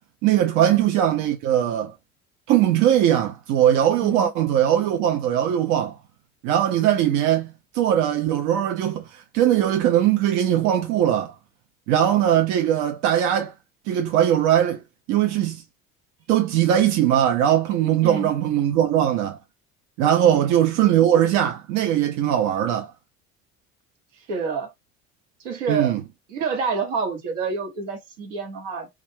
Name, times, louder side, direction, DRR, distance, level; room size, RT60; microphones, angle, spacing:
voice 1, 0.2-1.9 2.5-6.0 6.4-11.3 11.9-13.5 13.9-14.8 15.1-15.6 16.3-19.4 20.0-22.9 25.7-26.0, right 11 dB, 50° right, 0.5 m, -20 dB
voice 2, 4.0-4.3 18.0-18.3 20.2-20.6 24.3-24.7 25.4-25.9 26.3-28.9, right 5 dB, 65° right, 1.0 m, -28 dB
2.3 x 2.2 x 3.2 m
figure-of-eight pair, 60°, 40 cm